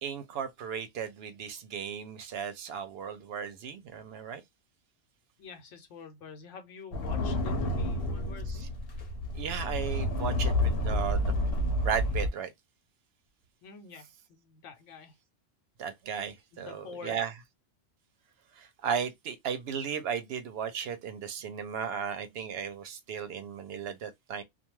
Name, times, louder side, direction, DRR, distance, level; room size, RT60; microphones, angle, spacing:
voice 1, 0.0-4.4 9.3-11.4 11.8-12.5 15.8-17.3 18.6-24.4, right 7 dB, 65° right, 0.8 m, -35 dB
voice 2, 5.4-8.7 13.6-15.2 16.5-17.2, left 5 dB, 90° left, 1.0 m, -47 dB
sound 1, 6.9-12.3, left 1 dB, 60° left, 0.9 m, -29 dB
2.3 x 2.3 x 3.0 m
omnidirectional pair, 1.2 m